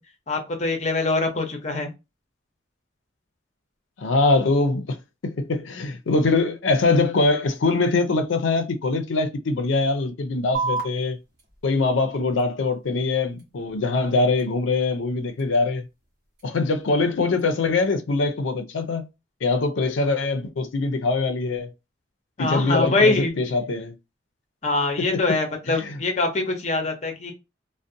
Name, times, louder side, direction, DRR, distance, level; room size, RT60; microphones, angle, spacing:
voice 1, 0.3-1.9 22.4-23.3 24.6-27.3, left 3 dB, 35° left, 0.6 m, -23 dB
voice 2, 4.0-5.0 5.2-11.2 11.6-15.9 16.4-19.1 19.4-21.7 22.4-23.9 25.0-25.2 25.7-26.0, left 3 dB, 80° left, 0.5 m, -23 dB
sound 1, 10.5-17.5, right 4 dB, 55° right, 0.9 m, -37 dB
2.5 x 2.1 x 2.5 m
head